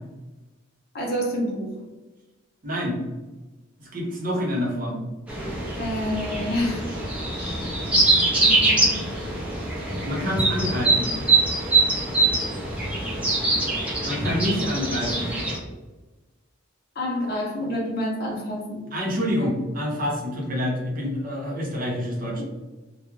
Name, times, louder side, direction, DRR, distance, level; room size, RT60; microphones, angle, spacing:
voice 1, 0.9-1.7 5.8-6.9 7.4-7.7 8.4-9.6 17.0-18.8, equal, 50° left, -2 dB, 0.6 m, -29 dB
voice 2, 2.6-3.0 3.8-5.0 10.0-11.1 14.0-15.3 18.9-22.4, equal, 40° right, -2 dB, 0.7 m, -27 dB
sound 1, 5.3-15.6, right 2 dB, 5° right, 0.4 m, -23 dB
2.2 x 2.1 x 3.1 m, 1.2 s
head